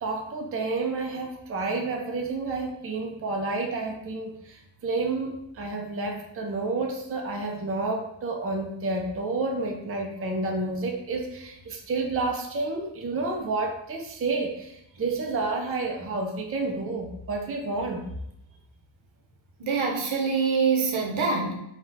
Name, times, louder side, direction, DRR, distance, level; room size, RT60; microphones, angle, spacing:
voice 1, 0.0-18.0, right 3 dB, 30° right, 1 dB, 0.5 m, -30 dB
voice 2, 19.6-21.5, right 5 dB, 85° right, 0 dB, 1.0 m, -24 dB
3.9 x 2.4 x 4.0 m, 0.81 s
wide cardioid pair, 145°, 47 cm